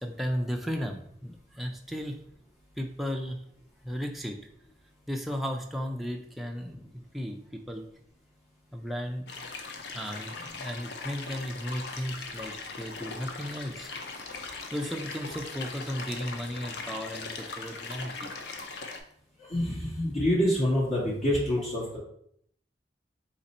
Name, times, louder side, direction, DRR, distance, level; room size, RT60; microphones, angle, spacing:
voice 1, 0.0-2.2 2.8-3.4 3.8-4.4 5.1-7.9 8.7-9.3 9.9-13.9 14.3-18.3, equal, ahead, 1 dB, 0.4 m, -35 dB
sound 1, 9.3-19.0, left 4 dB, 65° left, 0.6 m, -40 dB
voice 2, 19.4-22.0, equal, 45° left, -7 dB, 1.1 m, -26 dB
4.2 x 2.6 x 4.1 m, 0.67 s
head